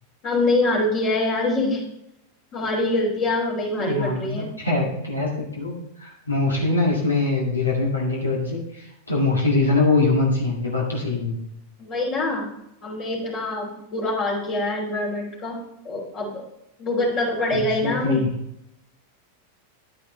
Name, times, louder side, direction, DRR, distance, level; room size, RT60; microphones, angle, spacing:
voice 1, 0.2-1.8 2.5-4.5 11.8-12.5 12.8-15.6 15.8-16.4 16.8-18.2, left 2 dB, 45° left, -4 dB, 3.0 m, -24 dB
voice 2, 3.8-11.4 17.5-18.3, left 3 dB, 85° left, -2 dB, 1.9 m, -23 dB
9.8 x 9.8 x 3.2 m, 0.82 s
figure-of-eight pair, 90°, 0 cm